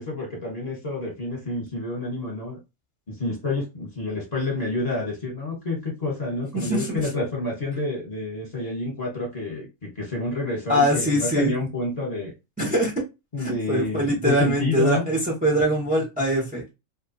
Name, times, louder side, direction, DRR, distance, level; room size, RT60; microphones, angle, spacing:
voice 1, 0.0-2.6 3.1-12.3 13.3-15.1, left 2 dB, 30° left, -2 dB, 1.0 m, -29 dB
voice 2, 6.5-7.1 10.7-11.5 12.6-12.9 13.4-16.7, right 1 dB, 10° right, -3 dB, 0.5 m, -23 dB
2.7 x 2.2 x 2.6 m, 0.25 s
omnidirectional pair, 1.4 m